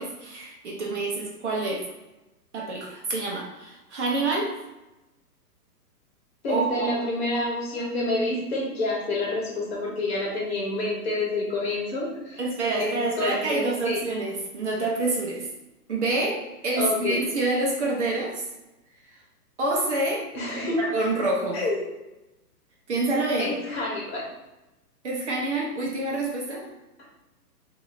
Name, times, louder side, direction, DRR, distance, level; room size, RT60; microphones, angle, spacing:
voice 1, 0.0-1.8 2.5-4.6 6.5-6.9 12.4-15.5 15.9-18.5 19.6-21.6 22.9-23.5 25.0-26.7, right 2 dB, 45° right, -2 dB, 0.9 m, -27 dB
voice 2, 6.4-12.4 12.8-14.0 16.8-17.2 20.3-20.9 21.5-21.8 23.4-24.2 27.0-27.1, left 2 dB, 40° left, -4 dB, 1.3 m, -28 dB
4.7 x 2.8 x 2.6 m, 0.99 s
hypercardioid pair, 170°, 48 cm